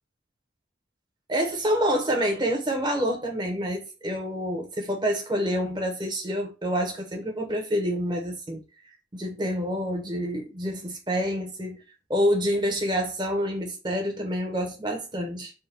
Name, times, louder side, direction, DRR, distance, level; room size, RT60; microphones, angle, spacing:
voice 1, 1.3-8.6 9.1-11.8 12.1-15.5, equal, 25° right, 0.7 m, -27 dB
3.5 x 2.2 x 4.2 m
head